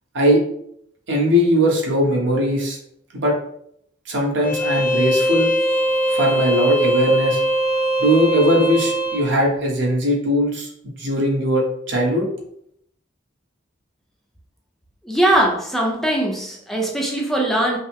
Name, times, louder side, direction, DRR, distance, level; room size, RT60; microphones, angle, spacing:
voice 1, 1.1-2.8 3.1-3.3 4.1-5.5 6.1-7.4 8.0-10.7 11.0-12.3, equal, 75° right, -1 dB, 1.1 m, -19 dB
Bowed string instrument, 4.4-9.3, right 1 dB, 45° left, 0.8 m, -21 dB
voice 2, 15.0-17.8, right 1 dB, ahead, -1 dB, 0.6 m, -20 dB
5.3 x 2.0 x 3.5 m, 0.70 s
head